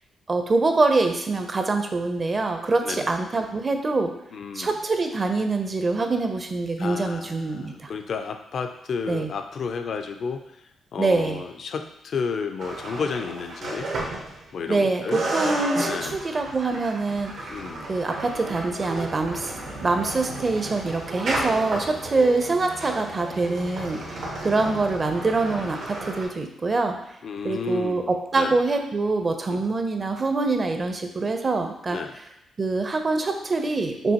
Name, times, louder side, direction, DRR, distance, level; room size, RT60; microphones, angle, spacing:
voice 1, 0.3-4.1 4.5-7.9 9.1-9.3 11.0-11.4 14.7-15.0 15.3-17.6 17.9-27.0 27.4-32.0 32.6-34.1, right 3 dB, 35° right, 5 dB, 0.6 m, -24 dB
voice 2, 2.8-3.1 4.3-4.8 6.8-10.6 10.9-13.9 14.5-15.2 15.9-16.2 17.5-17.9 27.2-28.1 28.4-28.6 29.5-29.6 31.9-32.2, left 5 dB, 60° left, 7 dB, 0.4 m, -32 dB
sound 1, 12.6-14.8 15.1-26.2, right 2 dB, 75° right, 1.1 m, -33 dB
sound 2, 19.2-25.8, left 3 dB, 80° left, 1.1 m, -44 dB
5.4 x 2.6 x 2.9 m, 0.83 s
cardioid pair, 80°, 0 cm